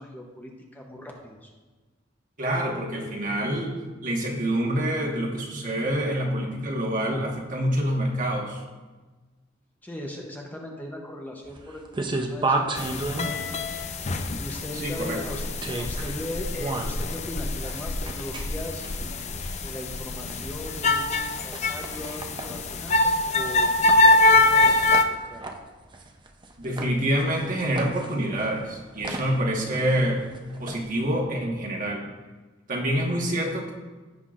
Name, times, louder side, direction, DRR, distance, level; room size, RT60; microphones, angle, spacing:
voice 1, 0.0-1.5 9.8-13.5 14.4-15.4 15.8-18.9 19.6-23.7 24.0-24.8 25.1-25.5, left 1 dB, 10° left, 0 dB, 0.8 m, -38 dB
voice 2, 2.4-8.6 14.8-15.2 26.6-30.2 30.6-32.0 32.7-33.7, right 1 dB, 45° right, 0 dB, 1.4 m, -26 dB
sound 1, 11.5-31.2, right 2 dB, 25° right, 0.6 m, -35 dB
sound 2, 12.8-25.0, left 2 dB, 35° left, 0.5 m, -24 dB
16.0 x 5.8 x 2.5 m, 1.3 s
head